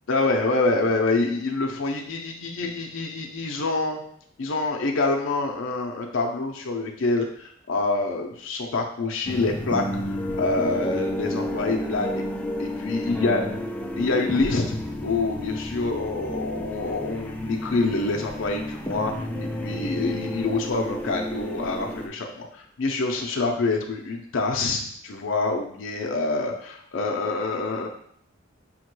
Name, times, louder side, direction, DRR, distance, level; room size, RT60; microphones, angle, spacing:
voice 1, 0.1-4.0 4.4-9.8 10.4-12.2 12.6-13.4 14.0-27.9, left 3 dB, 75° left, 2 dB, 0.5 m, -26 dB
sound 1, 9.2-22.1, left 1 dB, 5° left, 0.3 m, -31 dB
5.5 x 2.2 x 3.0 m, 0.65 s
head